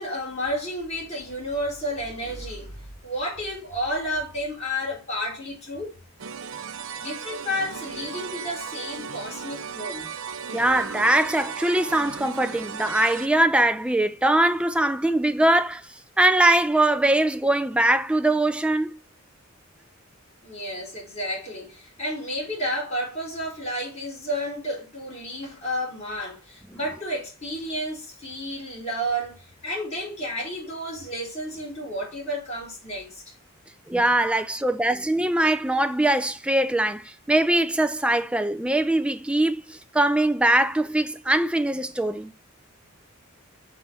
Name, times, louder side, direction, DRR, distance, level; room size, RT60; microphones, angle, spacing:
voice 1, 0.0-6.0 7.0-10.1 20.4-33.2, equal, 30° left, 4.5 m, -31 dB
sound 1, 6.2-13.3, right 6 dB, 70° right, 0.6 m, -36 dB
voice 2, 10.5-15.8 16.2-19.0 33.9-42.3, right 1 dB, 5° right, 0.3 m, -22 dB
6.1 x 4.0 x 5.5 m
head